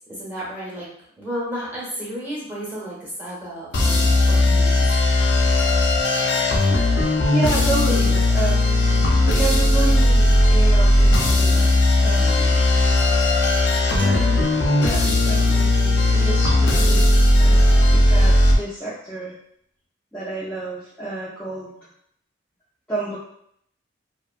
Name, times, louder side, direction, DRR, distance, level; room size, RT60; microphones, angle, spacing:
voice 1, 0.1-0.9 1.2-4.9, equal, 10° right, -7 dB, 1.1 m, -32 dB
sound 1, 3.7-18.5, left 1 dB, 65° left, 0.5 m, -17 dB
voice 2, 7.3-12.6 14.0-14.5 14.8-19.3 20.1-21.7 22.9-23.2, right 2 dB, 5° left, -11 dB, 0.6 m, -30 dB
sound 2, 14.0-15.5, left 2 dB, 80° right, 1.4 m, -35 dB
2.7 x 2.3 x 2.4 m, 0.71 s
head